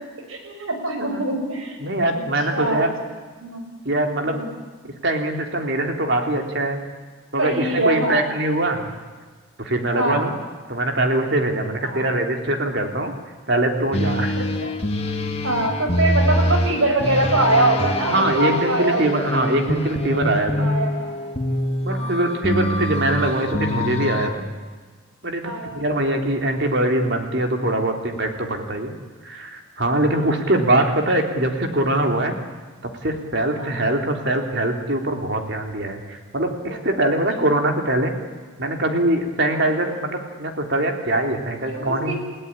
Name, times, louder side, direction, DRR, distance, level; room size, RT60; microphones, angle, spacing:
voice 1, 0.3-1.8 2.1-2.2 2.5-2.8 3.4-3.6 4.2-4.5 7.4-8.2 9.9-10.2 11.8-12.1 14.4-14.7 15.4-19.1 20.6-21.1 21.9-22.1 25.4-26.0 30.1-30.3 33.6-33.8 36.7-36.8 39.5-39.7 41.6-42.1, right 2 dB, 85° right, 4 dB, 6.0 m, -23 dB
voice 2, 1.8-2.9 3.9-4.4 5.0-6.8 7.3-8.9 9.6-10.3 10.7-13.1 13.5-14.4 18.1-20.7 21.8-24.4 25.2-29.0 29.2-32.4 33.0-38.1 38.6-42.1, right 1 dB, 55° right, 4 dB, 3.4 m, -22 dB
sound 1, 13.9-24.3, left 1 dB, 30° left, 1.9 m, -24 dB
29.5 x 17.0 x 10.0 m, 1.4 s
head